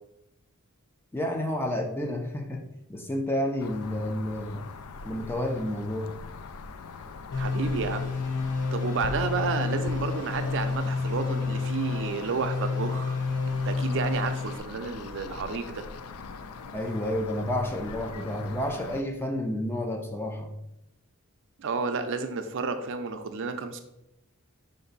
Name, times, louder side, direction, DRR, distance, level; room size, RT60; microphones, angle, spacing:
voice 1, 1.1-4.7 5.0-6.2 16.7-20.5, left 1 dB, 10° left, 3 dB, 0.4 m, -30 dB
sound 1, 3.6-19.0, left 4 dB, 80° left, 0.4 m, -42 dB
sound 2, 7.3-14.6, left 4 dB, 55° left, 0.7 m, -30 dB
voice 2, 7.3-8.1 8.7-13.2 13.6-15.8 21.6-23.8, right 4 dB, 60° right, 7 dB, 0.4 m, -31 dB
5.2 x 2.6 x 3.9 m, 0.88 s
head